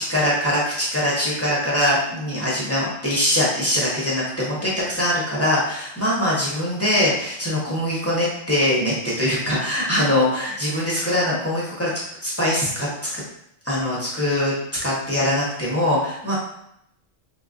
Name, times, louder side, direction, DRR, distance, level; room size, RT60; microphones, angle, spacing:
voice 1, 0.0-11.9 12.2-12.9 13.1-13.2 13.6-14.5 14.8-16.3, left 1 dB, 15° left, -8 dB, 0.7 m, -22 dB
3.5 x 2.4 x 2.5 m, 0.75 s
omnidirectional pair, 1.3 m